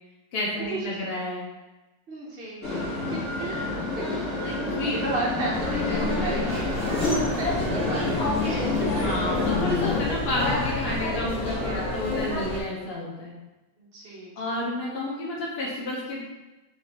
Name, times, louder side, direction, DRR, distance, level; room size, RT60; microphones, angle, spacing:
voice 1, 0.3-1.5 4.4-5.0 5.3-5.5 6.2-6.3 9.0-13.3 14.4-16.2, left 1 dB, 60° left, -4 dB, 0.6 m, -31 dB
voice 2, 2.1-6.7 7.4-9.0 11.6-12.0 13.8-14.3, right 2 dB, 90° right, -5 dB, 0.5 m, -34 dB
sound 1, 2.6-10.1, left 2 dB, 40° left, 1.8 m, -29 dB
sound 2, 5.5-12.6, left 2 dB, 5° left, 0.5 m, -29 dB
4.9 x 2.5 x 4.3 m, 1.1 s
omnidirectional pair, 2.2 m